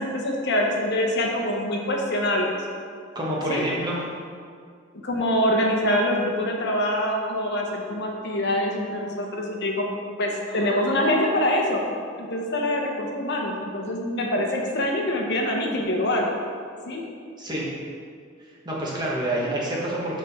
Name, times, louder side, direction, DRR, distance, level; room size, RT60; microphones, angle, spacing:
voice 1, 0.0-2.6 3.5-3.7 5.0-9.9 10.2-11.8 12.2-16.3 16.9-17.0, left 1 dB, 55° left, 1 dB, 0.9 m, -24 dB
voice 2, 3.1-4.0 17.4-17.7 18.6-20.2, right 1 dB, 20° right, -5 dB, 1.3 m, -27 dB
6.8 x 4.9 x 4.2 m, 2.2 s
head